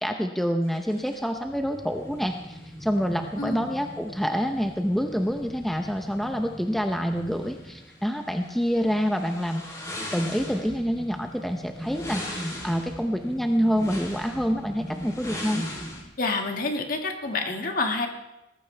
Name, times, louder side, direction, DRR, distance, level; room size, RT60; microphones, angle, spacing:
voice 1, 0.0-9.6 10.1-15.7, equal, ahead, 4 dB, 0.7 m, -27 dB
sound 1, 0.7-16.0, equal, 20° left, 3.3 m, -39 dB
voice 2, 3.4-3.7 16.2-18.1, left 3 dB, 50° left, 3 dB, 1.9 m, -28 dB
19.0 x 14.5 x 3.4 m, 0.94 s
head